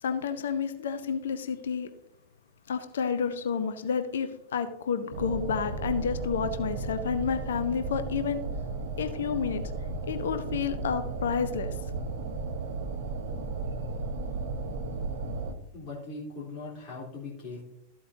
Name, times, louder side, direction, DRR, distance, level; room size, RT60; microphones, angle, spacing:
voice 1, 0.0-1.9 2.7-8.4 9.0-9.6 10.1-11.7, left 6 dB, 65° left, 9 dB, 0.8 m, -30 dB
sound 1, 5.1-15.5, right 3 dB, 55° right, 1.1 m, -34 dB
voice 2, 15.7-17.6, left 3 dB, 35° left, -6 dB, 3.6 m, -40 dB
13.5 x 8.5 x 2.8 m, 0.80 s
figure-of-eight pair, 90°, 0 cm